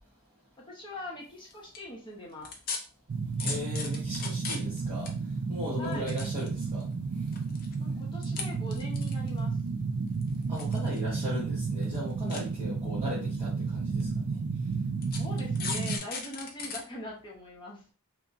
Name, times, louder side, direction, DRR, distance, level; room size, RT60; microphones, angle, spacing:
voice 1, 0.7-2.5 5.8-6.1 7.8-9.6 15.2-17.8, left 1 dB, 20° left, -4 dB, 0.8 m, -42 dB
sound 1, 1.5-1.8 2.5-2.8 3.4-4.8 5.1-5.2 5.8-6.8 7.3-7.7 8.2-8.4 8.7-9.4 10.2-11.0 11.3-11.4 11.8-12.0 12.3-12.4 13.2-13.3 14.0-14.1 15.0-16.8 17.2-17.3, left 5 dB, 40° left, 0.4 m, -36 dB
sound 2, 3.1-16.0, right 4 dB, 50° right, 0.3 m, -32 dB
voice 2, 3.4-7.3 10.5-14.4, left 1 dB, 20° right, -9 dB, 0.9 m, -38 dB
2.8 x 2.1 x 2.5 m, 0.36 s
head